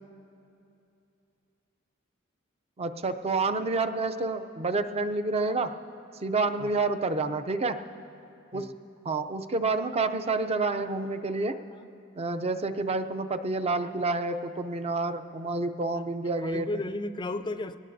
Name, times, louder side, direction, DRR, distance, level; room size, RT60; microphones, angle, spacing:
voice 1, 2.8-5.7 6.2-7.8 8.5-8.7 9.0-11.5 12.2-16.7, right 3 dB, 30° right, 8 dB, 0.5 m, -28 dB
voice 2, 16.4-17.8, left 2 dB, 20° left, 11 dB, 0.4 m, -34 dB
22.0 x 18.5 x 2.7 m, 2.7 s
head